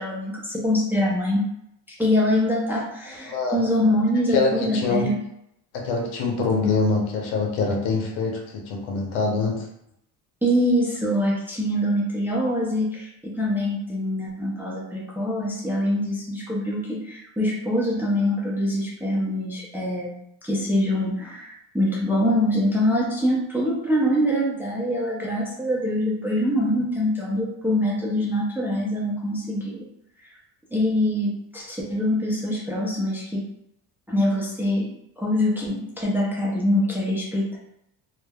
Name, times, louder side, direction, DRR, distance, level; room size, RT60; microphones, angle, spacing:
voice 1, 0.0-1.4 1.9-5.2 10.4-20.1 20.4-29.9 30.7-33.4 34.1-34.9 35.2-37.6, left 1 dB, 5° right, -4 dB, 0.4 m, -24 dB
voice 2, 3.3-3.6 4.3-5.1 5.7-9.7, left 4 dB, 80° left, 1 dB, 0.8 m, -24 dB
3.2 x 2.1 x 2.2 m, 0.78 s
cardioid pair, 110°, 47 cm